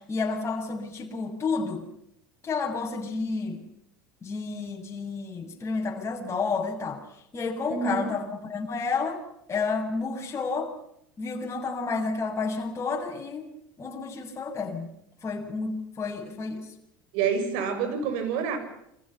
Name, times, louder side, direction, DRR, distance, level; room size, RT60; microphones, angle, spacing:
voice 1, 0.1-1.8 2.4-3.6 4.2-7.0 7.3-10.7 11.2-13.5 13.8-14.9 15.2-16.6, left 4 dB, 25° left, 1 dB, 7.0 m, -30 dB
voice 2, 7.7-8.1 17.1-18.6, right 6 dB, 60° right, 8 dB, 7.0 m, -27 dB
29.0 x 26.5 x 5.8 m, 0.78 s
figure-of-eight pair, 75°, 11 cm